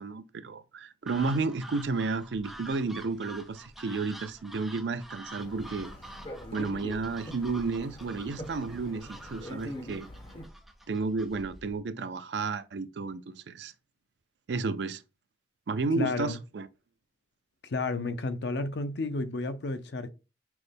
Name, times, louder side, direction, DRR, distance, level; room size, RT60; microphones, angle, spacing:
voice 1, 0.0-5.9 6.5-10.1 10.9-13.7 14.5-15.0 15.7-16.7, right 4 dB, 75° right, 0.4 m, -32 dB
sound 1, 1.1-11.8, right 1 dB, ahead, 0.6 m, -48 dB
sound 2, 5.4-10.5, equal, 30° left, 1.2 m, -43 dB
voice 2, 16.0-16.4 17.6-20.1, left 3 dB, 75° left, 0.6 m, -31 dB
6.0 x 2.1 x 3.3 m
head